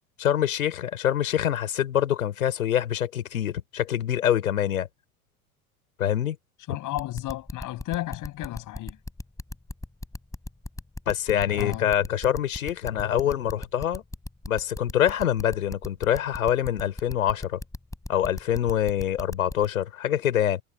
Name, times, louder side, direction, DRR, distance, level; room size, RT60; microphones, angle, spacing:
voice 1, 0.2-4.9 6.0-6.4 11.1-14.0 14.5-17.6 18.1-20.6, left 10 dB, 70° left, 6.7 m, -25 dB
voice 2, 6.7-9.0 11.5-11.9, left 16 dB, 45° left, 7.9 m, -33 dB
sound 1, 7.0-19.7, left 2 dB, 5° left, 6.8 m, -36 dB
figure-of-eight pair, 75°, 44 cm